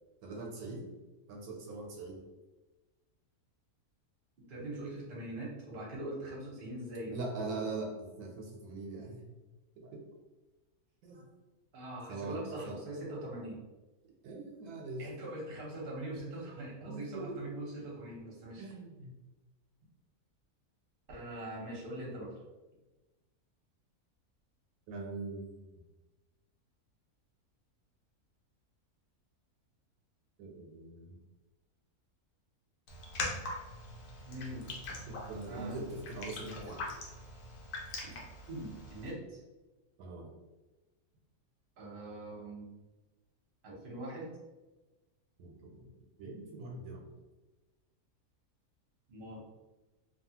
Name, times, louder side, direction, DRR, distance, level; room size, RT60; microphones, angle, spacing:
voice 1, 0.2-0.9 1.3-2.3 7.1-9.2 9.8-10.0 11.0-11.3 12.1-12.4 12.6-12.8 14.2-15.1 16.8-17.4 18.6-19.1 24.9-25.6 30.4-31.1 35.1-36.9 40.0-40.3 45.4-45.9 46.2-47.1, right 3 dB, 85° right, 1 dB, 1.1 m, -42 dB
voice 2, 4.5-7.2 11.7-13.6 15.0-18.7 21.1-22.4 34.3-34.7 35.5-35.8 38.0-38.2 38.5-39.4 41.8-42.7 43.6-44.3 49.1-49.4, right 1 dB, 45° right, -4 dB, 0.9 m, -42 dB
Raindrop, 32.9-39.1, left 2 dB, 85° left, 1.2 m, -42 dB
2.9 x 2.3 x 2.8 m, 1.1 s
omnidirectional pair, 1.6 m